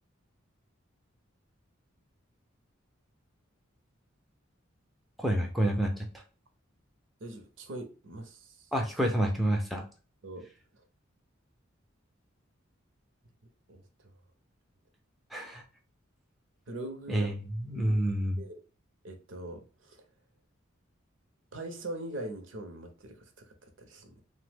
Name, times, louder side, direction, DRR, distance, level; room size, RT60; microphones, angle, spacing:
voice 1, 5.2-6.0 8.7-9.8 15.3-15.6 17.1-18.4, right 1 dB, ahead, 1 dB, 0.4 m, -28 dB
voice 2, 7.2-8.7 10.2-10.5 13.7-13.9 16.7-17.3 17.7-18.0 18.4-18.6 19.0-20.0 21.5-24.2, right 1 dB, 65° right, 6 dB, 0.6 m, -42 dB
3.0 x 2.0 x 3.3 m, 0.35 s
head